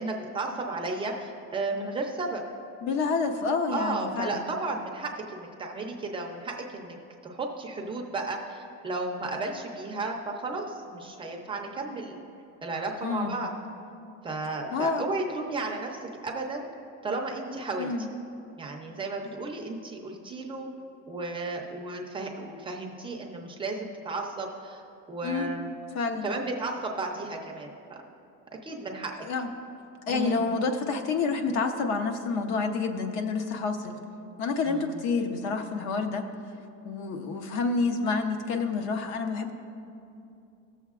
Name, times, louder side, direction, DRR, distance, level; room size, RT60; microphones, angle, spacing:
voice 1, 0.0-2.4 3.7-7.0 7.2-12.2 12.6-13.5 14.2-16.7 17.0-17.9 18.6-20.7 21.1-24.8 25.1-25.7 26.2-28.0 28.6-29.3 30.1-30.4 34.6-35.0, right 3 dB, 15° right, 0 dB, 0.4 m, -34 dB
voice 2, 2.8-4.4 13.0-13.4 14.7-15.0 17.8-18.1 19.3-19.4 25.2-25.5 25.9-26.3 29.2-29.5 30.1-34.0 34.4-36.3 36.8-39.5, left 4 dB, 55° left, 6 dB, 0.7 m, -28 dB
17.0 x 7.1 x 2.4 m, 2.7 s
cardioid pair, 175°, 32 cm